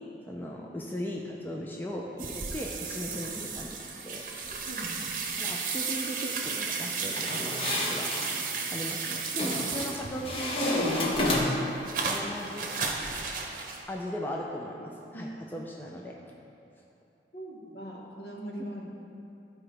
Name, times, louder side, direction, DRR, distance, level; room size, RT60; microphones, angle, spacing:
voice 1, 0.3-3.8 4.0-4.2 5.4-8.1 8.7-11.1 12.0-12.7 13.9-16.1 18.6-18.7, equal, 10° left, -2 dB, 0.5 m, -38 dB
sound 1, 2.2-10.4 10.8-13.8, right 5 dB, 45° right, 0.8 m, -34 dB
sound 2, 7.2-8.3 9.4-9.9 10.2-11.7, left 1 dB, 30° left, 1.0 m, -29 dB
voice 2, 17.3-18.9, right 1 dB, 65° left, -3 dB, 1.3 m, -41 dB
13.0 x 4.7 x 3.4 m, 2.7 s
head